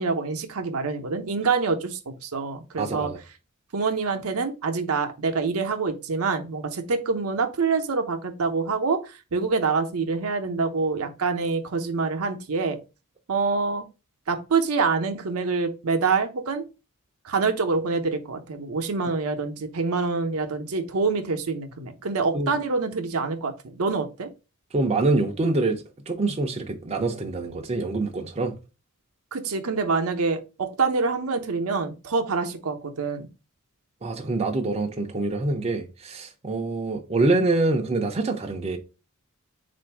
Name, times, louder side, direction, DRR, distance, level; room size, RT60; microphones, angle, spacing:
voice 1, 0.0-3.1 3.7-12.8 13.3-13.8 14.3-16.6 17.2-24.3 29.3-33.3, right 4 dB, 70° right, 0.7 m, -26 dB
voice 2, 2.8-3.2 22.3-22.5 24.7-28.5 34.0-38.8, right 2 dB, 30° right, 0.5 m, -25 dB
3.9 x 2.5 x 4.5 m
head